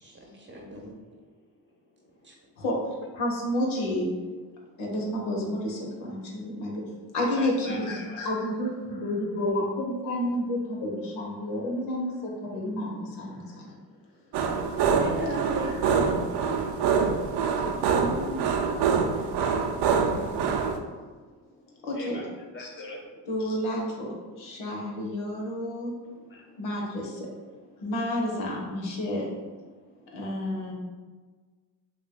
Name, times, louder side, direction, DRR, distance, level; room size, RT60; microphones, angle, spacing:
voice 1, 0.0-0.9 2.2-2.3 14.9-16.1 18.4-18.5, right 1 dB, 25° right, -1 dB, 0.9 m, -35 dB
voice 2, 3.1-4.1 4.8-6.8 7.1-13.8 15.6-15.7 17.9-18.5 21.8-22.2 22.6-22.7 23.3-25.9 26.6-27.3 27.8-29.3 30.1-30.7, left 1 dB, 70° left, -1 dB, 1.2 m, -30 dB
voice 3, 7.2-8.2 19.1-23.3 26.0-26.6 26.9-27.9 29.6-30.2 30.4-30.5, left 1 dB, 25° left, 1 dB, 1.0 m, -46 dB
sound 1, 14.3-20.8, right 6 dB, 55° right, 0.6 m, -25 dB
6.0 x 2.4 x 2.2 m, 1.4 s
supercardioid pair, 70°, 49 cm